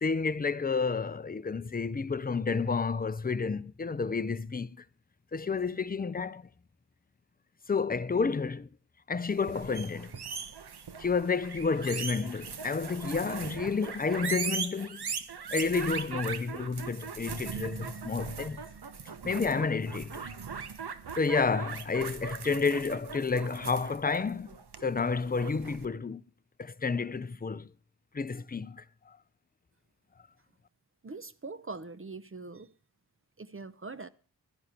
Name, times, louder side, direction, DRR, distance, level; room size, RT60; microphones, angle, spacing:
voice 1, 0.0-4.8 5.3-6.4 7.7-8.7 9.1-10.1 11.0-15.1 15.5-18.6 19.2-20.4 21.1-24.5 24.8-26.2 26.6-27.7 28.1-29.2, left 4 dB, 20° left, 0.6 m, -30 dB
sound 1, 9.3-25.9, right 6 dB, 70° right, 1.2 m, -39 dB
voice 2, 31.0-32.7 33.4-34.1, right 3 dB, 30° right, 0.8 m, -42 dB
13.0 x 10.5 x 4.4 m
cardioid pair, 55°, 41 cm